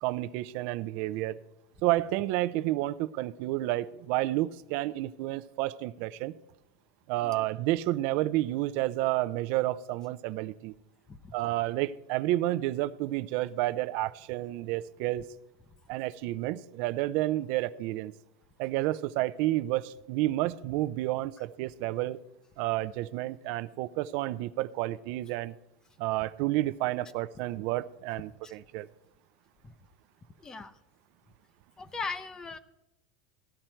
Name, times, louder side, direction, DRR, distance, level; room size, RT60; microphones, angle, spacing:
voice 1, 0.0-1.4 1.8-6.4 7.1-10.7 11.3-15.2 15.9-18.1 18.6-22.2 22.6-25.5 26.0-28.9, right 16 dB, 55° right, 0.5 m, -30 dB
voice 2, 30.4-30.7 31.8-32.6, left 4 dB, 15° left, 0.6 m, -38 dB
15.5 x 11.0 x 4.5 m
supercardioid pair, 150°, 4 cm